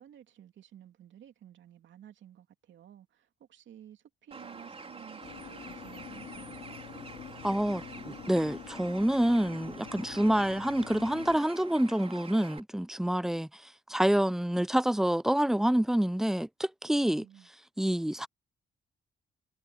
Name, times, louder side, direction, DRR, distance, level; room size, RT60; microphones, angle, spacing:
voice 1, 0.0-6.8 17.1-17.5, right 10 dB, 70° right, 2.7 m, -53 dB
Bird, 4.3-12.6, right 4 dB, 30° right, 4.1 m, -47 dB
sound 1, 5.2-11.4, left 9 dB, 65° left, 2.4 m, -46 dB
voice 2, 7.4-17.2 17.8-18.3, right 1 dB, ahead, 0.5 m, -27 dB
cardioid pair, 90°, 20 cm